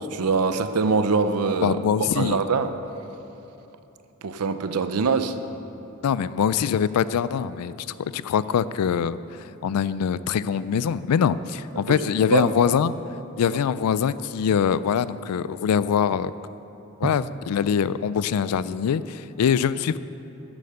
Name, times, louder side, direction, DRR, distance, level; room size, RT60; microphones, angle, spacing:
voice 1, 0.1-1.8 2.2-2.7 4.2-5.3 11.9-12.0 12.3-12.5 17.0-17.1, right 4 dB, 90° right, 10 dB, 0.6 m, -23 dB
voice 2, 1.6-2.4 6.0-9.2 9.6-12.9 13.4-16.3 17.0-20.0, left 7 dB, 90° left, 16 dB, 0.3 m, -23 dB
10.0 x 8.4 x 6.7 m, 3.0 s
head